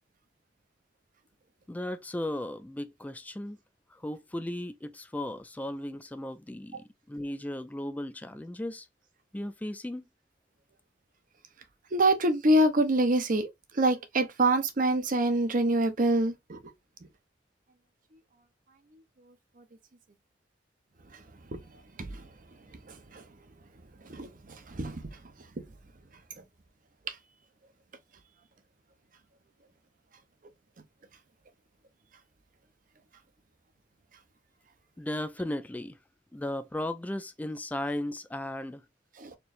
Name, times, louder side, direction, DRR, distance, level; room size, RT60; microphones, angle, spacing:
voice 1, 1.7-3.6 3.9-8.9 9.3-10.0 35.0-36.0 36.3-38.8, left 1 dB, 10° left, 0.3 m, -36 dB
voice 2, 11.9-13.5 13.7-16.6 21.5-21.6 22.0-22.2 22.9-23.2 24.1-25.0 27.1-27.2 39.2-39.4, right 1 dB, 50° right, 0.8 m, -26 dB
4.4 x 3.1 x 2.4 m
head